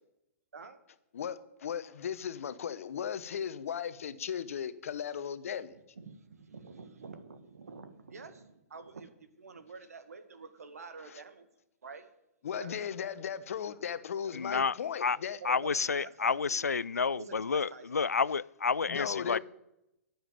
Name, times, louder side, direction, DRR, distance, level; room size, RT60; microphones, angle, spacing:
voice 1, 1.1-5.8 11.0-11.2 12.4-15.4 18.9-19.4, left 8 dB, 65° left, 1.0 m, -37 dB
voice 2, 5.7-11.5 11.8-12.1 12.6-12.8 15.4-16.8 17.1-18.1, right 4 dB, 75° right, 1.7 m, -48 dB
voice 3, 14.3-15.2 15.4-19.4, left 5 dB, 85° left, 0.4 m, -30 dB
11.0 x 8.7 x 9.0 m
figure-of-eight pair, 115°, 8 cm